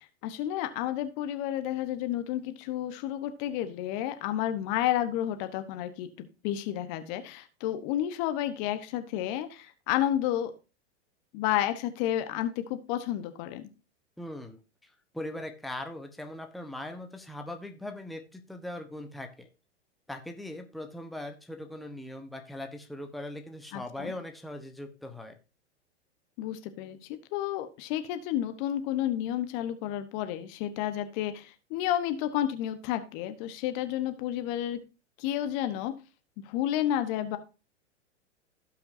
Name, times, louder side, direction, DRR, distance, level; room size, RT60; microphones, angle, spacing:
voice 1, 0.2-10.5 11.3-13.7 23.7-24.1 26.4-34.8 35.2-35.9 36.4-37.4, left 12 dB, 45° left, 9 dB, 1.2 m, -31 dB
voice 2, 14.2-19.5 20.1-25.3, left 1 dB, ahead, 4 dB, 1.1 m, -40 dB
16.5 x 5.7 x 2.7 m, 0.31 s
hypercardioid pair, 100°, 35 cm